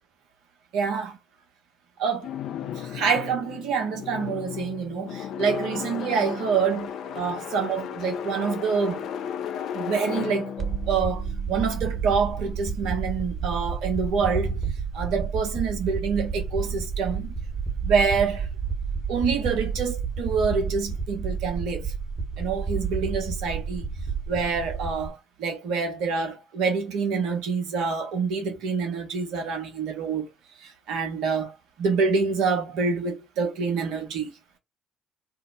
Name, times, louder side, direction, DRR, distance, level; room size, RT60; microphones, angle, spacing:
voice 1, 0.7-1.2 2.0-2.3 2.7-9.1 9.7-14.6 14.9-17.3 17.8-18.5 19.1-21.9 22.4-23.9 24.3-30.3 30.6-34.3, right 5 dB, 70° right, 0.9 m, -27 dB
sound 1, 2.2-12.2, left 9 dB, 65° left, 0.4 m, -34 dB
sound 2, 10.6-25.1, right 5 dB, 30° right, 1.2 m, -30 dB
2.7 x 2.0 x 3.7 m
hypercardioid pair, 50°, 0 cm